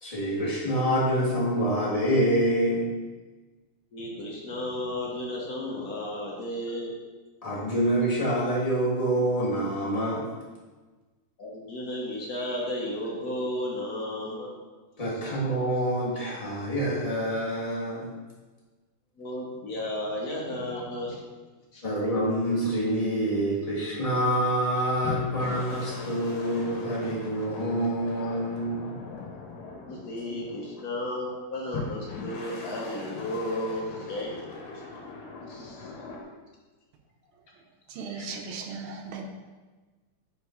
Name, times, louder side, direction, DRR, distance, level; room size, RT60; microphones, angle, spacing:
voice 1, 0.0-2.8 7.4-10.2 15.0-18.1 21.8-28.9, right 1 dB, 20° left, -7 dB, 1.2 m, -26 dB
voice 2, 3.9-6.9 11.4-14.5 15.1-15.4 19.2-21.2 21.7-21.8 29.9-34.4 34.7-34.8 35.5-35.9 38.0-38.3, left 1 dB, 50° left, -2 dB, 1.3 m, -33 dB
sound 1, 25.0-30.9 31.7-36.2, left 4 dB, 85° left, 1.9 m, -40 dB
voice 3, 37.9-39.2, right 5 dB, 75° right, 3 dB, 1.5 m, -37 dB
5.0 x 4.0 x 4.8 m, 1.3 s
omnidirectional pair, 2.4 m